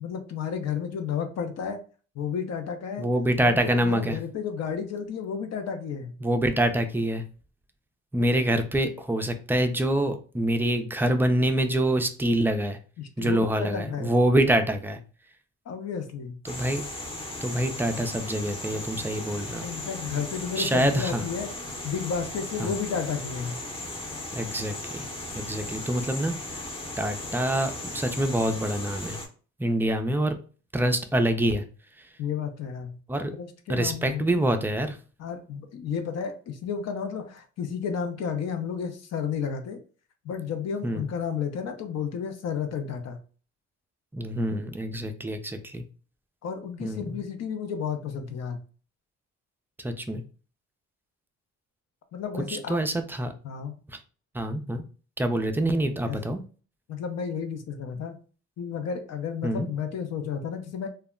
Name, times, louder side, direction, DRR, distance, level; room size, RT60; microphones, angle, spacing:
voice 1, 0.0-1.8 2.2-3.1 3.4-6.1 13.0-14.2 15.7-16.4 19.6-21.5 21.8-23.6 32.2-33.0 33.3-34.2 35.2-39.8 40.2-43.2 46.4-48.6 52.1-52.8 53.4-53.7 56.0-56.2 56.9-58.2 58.6-60.9, left 7 dB, 60° left, 6 dB, 0.5 m, -32 dB
voice 2, 3.0-4.2 6.2-7.2 8.1-12.8 13.2-15.0 16.4-16.8 17.4-19.6 20.6-21.2 22.6-22.7 24.3-25.0 25.3-26.6 27.0-29.2 29.6-30.3 30.7-31.6 33.1-33.3 33.7-35.0 40.8-41.1 44.1-45.8 46.8-47.2 49.8-50.2 52.5-53.3 54.3-54.8 55.2-56.4 59.4-59.7, right 1 dB, 5° right, 6 dB, 0.3 m, -26 dB
sound 1, 16.5-29.3, left 2 dB, 20° left, 0.7 m, -37 dB
2.2 x 2.0 x 3.5 m, 0.38 s
cardioid pair, 90°, 30 cm